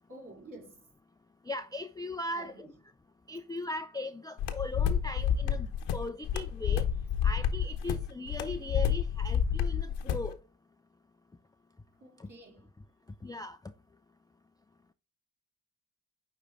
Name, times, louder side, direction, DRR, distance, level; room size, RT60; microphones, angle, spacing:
voice 1, 0.1-0.8 2.3-2.7 12.0-12.7, right 1 dB, 45° right, 3.5 m, -49 dB
voice 2, 1.5-2.7 3.3-6.9 7.2-10.4 12.2-12.3 13.2-13.6, left 2 dB, 10° left, 0.4 m, -38 dB
sound 1, 4.4-10.3, left 8 dB, 70° left, 1.0 m, -29 dB
9.5 x 3.3 x 3.6 m
hypercardioid pair, 50°, 44 cm